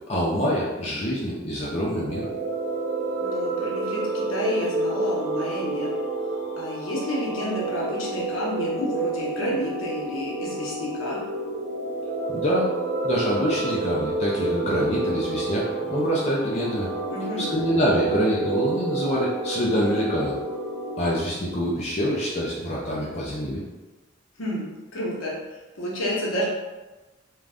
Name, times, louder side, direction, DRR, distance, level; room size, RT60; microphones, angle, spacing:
voice 1, 0.1-2.3 12.3-12.7 13.0-16.9 17.4-20.4 21.0-23.6, equal, 30° left, -5 dB, 0.4 m, -25 dB
sound 1, 1.9-21.2, right 2 dB, 65° right, 0.4 m, -29 dB
voice 2, 3.2-5.9 6.6-11.2 17.1-17.5 24.4-25.4 25.7-26.5, left 1 dB, 75° left, -4 dB, 0.8 m, -30 dB
2.5 x 2.2 x 3.3 m, 1.2 s
head